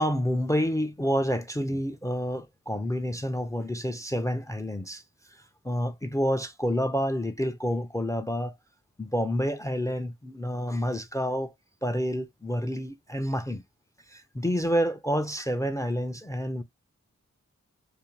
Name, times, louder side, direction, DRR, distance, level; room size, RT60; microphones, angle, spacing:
voice 1, 0.0-5.0 5.3-8.5 9.0-11.5 11.8-13.6 14.1-16.6, equal, 10° left, 0.3 m, -28 dB
2.5 x 2.1 x 3.0 m
cardioid pair, 45°, 30 cm